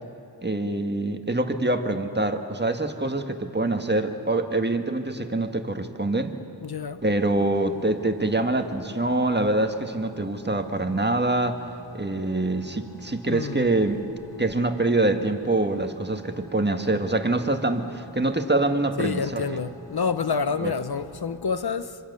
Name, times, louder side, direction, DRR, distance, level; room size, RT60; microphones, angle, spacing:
voice 1, 0.4-6.4 7.0-11.6 11.9-14.1 14.4-19.4 20.6-20.7, right 2 dB, 25° right, 1.8 m, -25 dB
voice 2, 6.6-7.0 13.2-13.7 19.0-22.0, left 5 dB, 70° left, 0.9 m, -28 dB
sound 1, 7.0-21.4, right 2 dB, 10° left, 2.8 m, -48 dB
26.5 x 26.0 x 6.9 m
wide cardioid pair, 45°, 39 cm